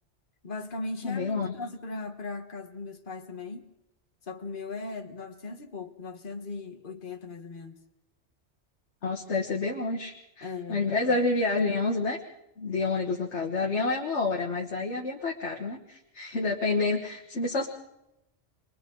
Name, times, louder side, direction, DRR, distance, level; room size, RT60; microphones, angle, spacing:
voice 1, 0.4-3.7 4.2-7.8 10.4-11.3, left 3 dB, 50° left, 1.6 m, -38 dB
voice 2, 1.0-1.5 9.0-12.2 12.6-17.7, left 3 dB, 75° left, 1.9 m, -28 dB
29.5 x 22.5 x 3.9 m
omnidirectional pair, 1.2 m